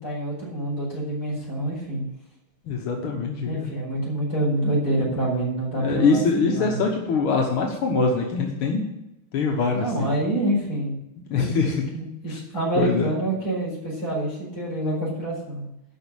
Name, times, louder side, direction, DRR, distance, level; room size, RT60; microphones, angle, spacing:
voice 1, 0.0-2.0 3.4-6.8 9.7-10.9 11.3-15.7, right 1 dB, 45° left, -4 dB, 4.9 m, -27 dB
voice 2, 2.7-3.7 5.8-8.8 9.3-10.1 11.3-11.8 12.8-13.1, left 4 dB, 90° left, 1 dB, 2.1 m, -23 dB
11.5 x 5.2 x 8.6 m, 0.88 s
omnidirectional pair, 2.3 m